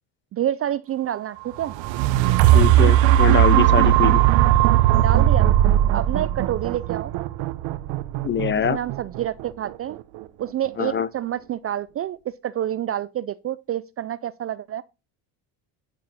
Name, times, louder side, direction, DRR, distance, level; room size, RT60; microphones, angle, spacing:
voice 1, 0.3-1.7 5.0-5.5 5.9-7.1 8.5-10.0 10.4-14.8, right 11 dB, 30° right, 0.4 m, -28 dB
sound 1, 1.6-9.7 10.2-10.3, right 13 dB, 65° right, 0.9 m, -18 dB
voice 2, 2.5-4.2 8.2-8.8 10.8-11.1, left 8 dB, 25° left, 0.5 m, -23 dB
sound 2, 3.1-4.4 4.9-5.0 5.3-6.6, left 4 dB, 90° left, 1.4 m, -41 dB
10.5 x 4.8 x 5.5 m
supercardioid pair, 95°, 49 cm